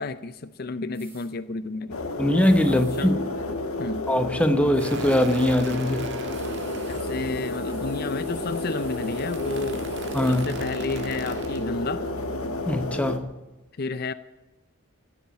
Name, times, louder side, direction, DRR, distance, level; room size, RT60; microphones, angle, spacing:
voice 1, 0.0-2.0 2.7-3.1 3.8-4.1 6.9-9.8 10.3-12.0 13.8-14.1, left 3 dB, 45° left, 0.5 m, -31 dB
sound 1, 0.9-1.3 2.4-3.1 4.7-5.0 6.3-10.4, right 2 dB, 10° right, 3.9 m, -51 dB
sound 2, 1.9-13.2, left 2 dB, 85° left, 1.6 m, -31 dB
voice 2, 2.2-3.1 4.1-6.1 10.1-10.5 12.6-13.3, left 1 dB, 5° left, 0.8 m, -22 dB
Leaf Blower Echo gas starting, 4.8-11.7, right 3 dB, 55° right, 1.6 m, -40 dB
15.5 x 8.4 x 9.5 m
head